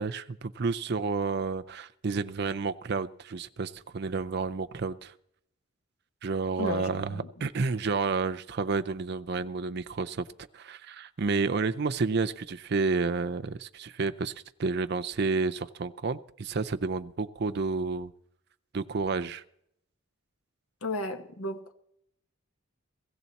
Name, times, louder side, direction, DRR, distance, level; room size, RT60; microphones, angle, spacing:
voice 1, 0.0-5.1 6.2-10.3 10.5-14.3 14.6-18.1 18.7-19.4, right 4 dB, 50° right, 0.5 m, -30 dB
voice 2, 6.6-7.3 20.8-21.7, left 1 dB, 80° left, 1.3 m, -34 dB
17.5 x 15.0 x 4.1 m
head